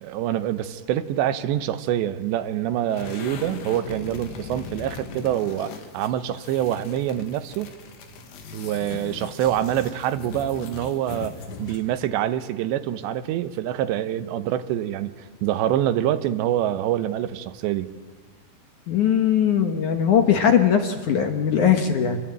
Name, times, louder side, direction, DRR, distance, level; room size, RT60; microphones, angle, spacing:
voice 1, 0.0-7.7 8.5-15.1 15.4-17.9, right 12 dB, 85° right, 11 dB, 3.2 m, -26 dB
sound 1, 2.9-12.0, left 6 dB, 90° left, 4.4 m, -39 dB
voice 2, 18.9-22.2, left 8 dB, 65° left, 5 dB, 2.2 m, -20 dB
27.0 x 21.5 x 8.9 m, 1.4 s
omnidirectional pair, 4.9 m